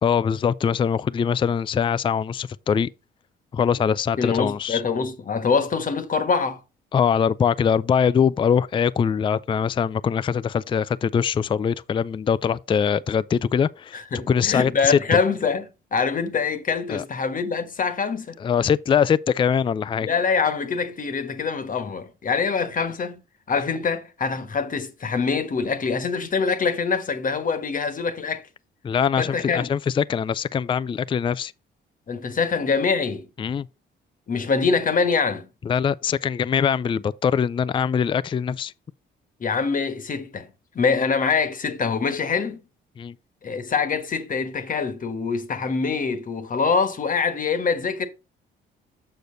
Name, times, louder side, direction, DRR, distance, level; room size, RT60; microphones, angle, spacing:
voice 1, 0.0-2.9 3.5-4.8 6.9-14.0 14.3-15.2 16.9-17.0 18.4-20.1 28.8-31.5 33.4-33.7 35.7-38.7 43.0-43.1, left 7 dB, 25° left, 0.3 m, -22 dB
voice 2, 4.2-6.6 13.9-15.6 15.9-18.4 20.0-28.5 29.2-29.7 32.1-33.3 34.3-35.5 39.4-42.6 43.4-48.1, left 5 dB, 45° left, 1.3 m, -24 dB
6.8 x 6.5 x 3.9 m
cardioid pair, 90°, 20 cm